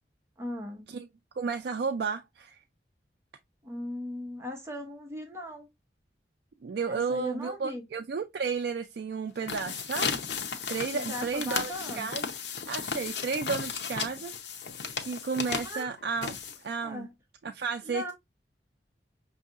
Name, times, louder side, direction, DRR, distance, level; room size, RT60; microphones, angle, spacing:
voice 1, 0.4-0.9 3.6-5.7 6.9-7.8 10.9-12.2 15.6-15.9 16.8-17.1 17.8-18.1, left 1 dB, 15° right, 0.7 m, -38 dB
voice 2, 1.4-2.6 6.6-10.1 10.7-12.2 12.7-14.3 15.0-16.4 16.6-17.1 17.4-18.1, right 5 dB, 65° right, 0.3 m, -32 dB
sound 1, 9.3-16.9, left 6 dB, 75° left, 0.7 m, -35 dB
5.5 x 2.7 x 2.4 m
head